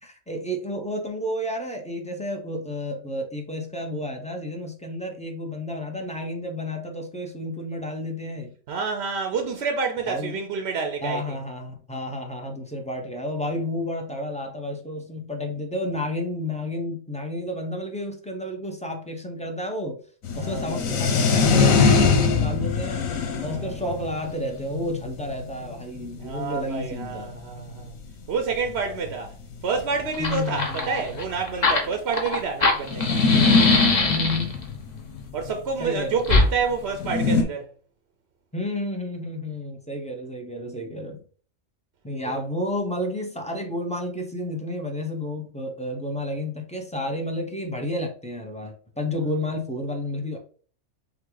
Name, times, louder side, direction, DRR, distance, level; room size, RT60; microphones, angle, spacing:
voice 1, 0.0-8.5 10.1-10.4 11.0-20.0 20.4-23.0 23.4-27.4 30.2-31.0 34.0-34.5 35.8-36.2 38.5-41.2 42.0-50.4, left 1 dB, 5° left, 0.6 m, -31 dB
voice 2, 8.7-11.4 20.3-20.8 23.5-23.8 26.2-27.9 28.3-29.3 29.6-33.2 35.3-37.7 42.2-42.3, right 5 dB, 60° right, 0.8 m, -28 dB
sound 1, 20.2-26.4 27.0-27.1 27.3-27.4 27.6-27.8 28.7-28.8 29.0-29.1 29.9-31.4 32.9-35.5 36.9-37.4, left 4 dB, 85° left, 1.3 m, -22 dB
Fire, 29.8-29.9 30.1-34.6 36.2-36.5, left 3 dB, 40° left, 0.8 m, -23 dB
5.8 x 2.3 x 3.8 m
omnidirectional pair, 1.4 m